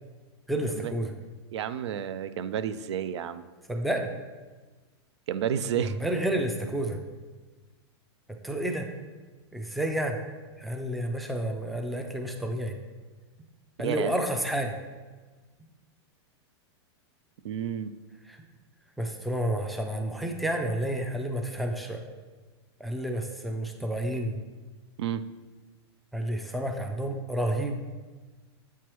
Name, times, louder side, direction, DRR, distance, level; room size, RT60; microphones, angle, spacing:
voice 1, 0.5-1.1 3.7-4.1 5.8-7.0 8.4-8.9 9.5-10.2 10.6-12.7 13.8-14.8 19.0-22.0 22.8-24.4 26.1-27.9, right 1 dB, ahead, 3 dB, 0.4 m, -30 dB
voice 2, 1.5-3.4 5.3-5.9 13.8-14.1 17.4-17.9 25.0-25.2, right 9 dB, 85° right, 13 dB, 0.4 m, -31 dB
8.1 x 4.7 x 3.0 m, 1.3 s
supercardioid pair, 150°, 14 cm